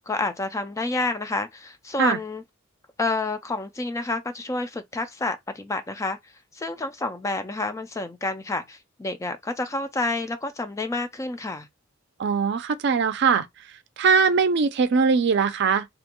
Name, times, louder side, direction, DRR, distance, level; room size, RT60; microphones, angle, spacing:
voice 1, 0.1-2.4 3.0-11.7, left 2 dB, 15° left, 0.3 m, -29 dB
voice 2, 12.2-13.5 14.0-15.9, right 5 dB, 55° right, 0.4 m, -21 dB
2.4 x 2.2 x 2.8 m
head